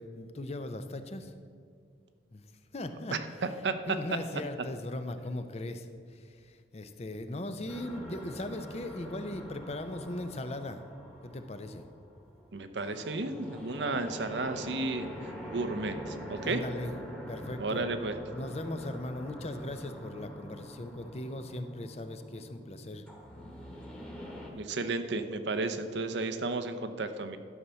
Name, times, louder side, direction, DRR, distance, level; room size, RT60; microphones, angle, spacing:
voice 1, 0.0-1.3 2.3-3.6 3.9-10.8 11.2-11.9 14.8-15.4 16.4-17.0 17.3-17.8 18.3-23.0 24.5-24.6, left 1 dB, 35° left, 9 dB, 0.6 m, -39 dB
voice 2, 3.1-3.7 12.5-15.1 15.5-16.6 17.6-18.2 24.6-27.4, right 3 dB, 90° right, 8 dB, 0.7 m, -33 dB
sound 1, 7.7-24.5, equal, 5° left, 1.3 m, -45 dB
12.5 x 5.6 x 6.9 m, 2.1 s
head